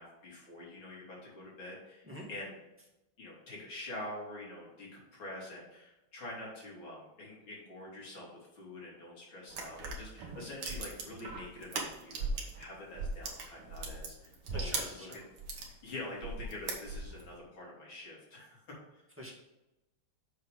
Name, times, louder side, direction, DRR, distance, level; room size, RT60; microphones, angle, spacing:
voice 1, 0.0-2.6 3.2-15.1 15.8-19.0, left 1 dB, 65° left, -4 dB, 3.7 m, -46 dB
sound 1, 9.5-12.6 12.9-15.7 16.2-17.3, right 3 dB, 85° right, 2.4 m, -38 dB
voice 2, 14.5-15.2 19.2-19.3, equal, 5° right, -3 dB, 2.0 m, -45 dB
7.9 x 6.5 x 3.8 m, 0.97 s
omnidirectional pair, 2.4 m